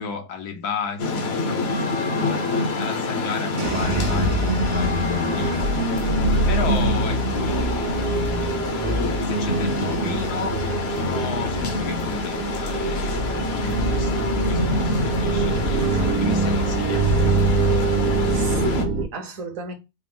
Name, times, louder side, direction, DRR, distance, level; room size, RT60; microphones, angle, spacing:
voice 1, 0.0-2.5 2.7-5.7 6.5-8.7 9.3-10.6 10.9-15.9 16.2-17.4, left 5 dB, 80° left, 1.4 m, -34 dB
sound 1, 1.0-18.9, left 2 dB, 55° left, 0.8 m, -27 dB
sound 2, 3.6-19.1, right 2 dB, 90° right, 1.5 m, -24 dB
voice 2, 15.8-16.2 18.3-19.7, right 3 dB, 65° right, 1.2 m, -33 dB
4.7 x 2.0 x 3.6 m
omnidirectional pair, 1.6 m